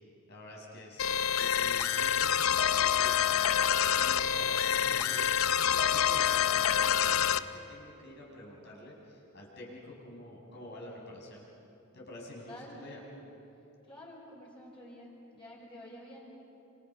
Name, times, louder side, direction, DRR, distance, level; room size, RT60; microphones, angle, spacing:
voice 1, 0.3-3.2 3.9-11.4 11.9-13.0, left 1 dB, 50° left, -3 dB, 6.2 m, -48 dB
sound 1, 1.0-7.4, left 9 dB, 80° left, 0.7 m, -27 dB
voice 2, 12.5-13.0 13.8-16.2, left 1 dB, 25° left, -4 dB, 5.1 m, -49 dB
29.0 x 27.5 x 5.7 m, 2.9 s
head